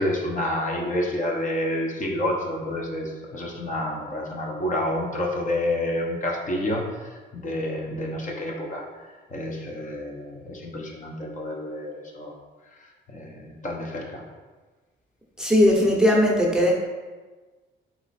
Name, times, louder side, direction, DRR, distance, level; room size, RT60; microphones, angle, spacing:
voice 1, 0.0-8.9 9.3-12.3 13.1-14.2, left 1 dB, 40° left, -1 dB, 0.8 m, -29 dB
voice 2, 15.4-16.7, left 1 dB, 5° right, -2 dB, 0.7 m, -18 dB
4.1 x 3.0 x 4.1 m, 1.3 s
cardioid pair, 90°, 20 cm